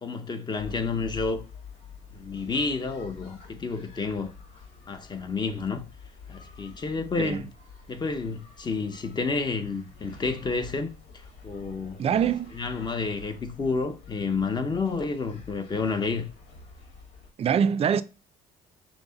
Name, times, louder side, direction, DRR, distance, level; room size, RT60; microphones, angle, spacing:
voice 1, 0.0-1.4 2.1-4.3 4.9-5.9 6.3-7.5 7.9-12.0 12.5-16.3, left 4 dB, 25° left, 0.7 m, -30 dB
sound 1, 0.6-17.3, left 5 dB, 80° left, 1.3 m, -47 dB
voice 2, 7.2-7.5 12.0-12.5 17.4-18.0, right 8 dB, 35° right, 0.4 m, -24 dB
6.0 x 2.1 x 3.8 m
cardioid pair, 110°, 17 cm